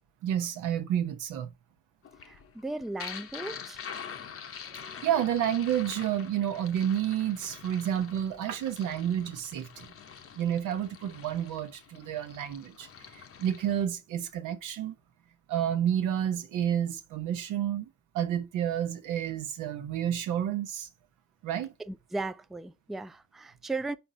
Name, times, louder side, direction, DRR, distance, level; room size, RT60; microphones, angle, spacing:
voice 1, 0.2-1.5 4.7-9.9 10.4-14.9 15.5-17.9 18.1-20.9 21.4-21.7, right 10 dB, 90° right, 0.9 m, -30 dB
sound 1, 2.0-13.9, left 7 dB, 45° left, 0.8 m, -45 dB
voice 2, 2.2-3.8 4.7-5.1 21.8-24.0, right 2 dB, ahead, 0.3 m, -37 dB
4.4 x 4.4 x 4.9 m
cardioid pair, 90°, 30 cm